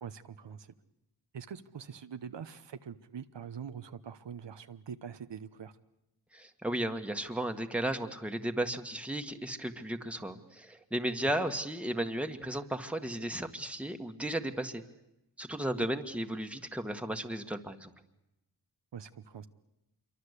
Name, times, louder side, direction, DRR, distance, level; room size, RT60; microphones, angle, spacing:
voice 1, 0.0-0.7 1.3-5.7 11.2-11.3 15.8-15.9 18.9-19.5, right 7 dB, 85° right, 10 dB, 1.1 m, -44 dB
voice 2, 6.3-14.8 15.4-17.9, right 1 dB, 5° right, 5 dB, 1.7 m, -34 dB
27.0 x 23.5 x 8.3 m, 0.90 s
wide cardioid pair, 70°, 42 cm